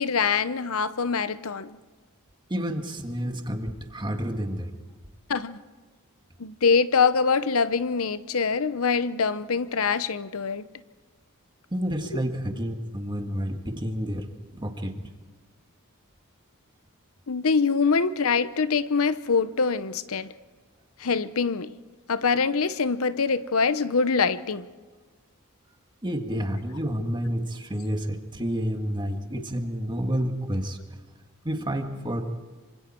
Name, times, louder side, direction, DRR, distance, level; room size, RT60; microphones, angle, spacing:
voice 1, 0.0-1.8 5.3-5.6 6.4-10.6 17.3-20.3 21.0-21.7 22.1-24.7, left 5 dB, 70° left, 0.8 m, -24 dB
voice 2, 2.5-4.8 11.7-15.1 26.0-31.0 31.4-32.3, equal, 20° right, 1.9 m, -30 dB
26.5 x 25.5 x 4.5 m
head